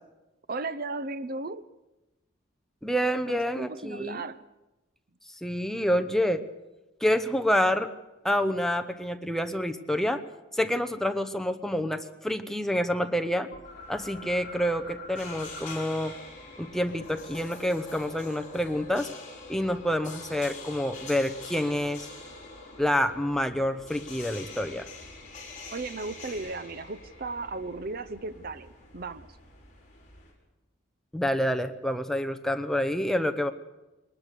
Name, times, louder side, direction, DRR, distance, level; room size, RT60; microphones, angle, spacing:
voice 1, 0.5-1.7 3.3-4.4 25.7-29.4, right 3 dB, 45° right, 0.6 m, -36 dB
voice 2, 2.8-4.2 5.4-6.4 7.0-7.9 8.2-10.2 10.5-13.5 13.9-16.1 16.6-19.1 19.5-22.1 22.8-24.9 31.1-33.5, equal, ahead, 0.9 m, -28 dB
sound 1, 13.5-16.1 16.4-18.7, left 2 dB, 55° left, 7.8 m, -46 dB
sound 2, 13.6-30.3, left 3 dB, 40° left, 5.9 m, -45 dB
22.0 x 19.5 x 6.8 m
head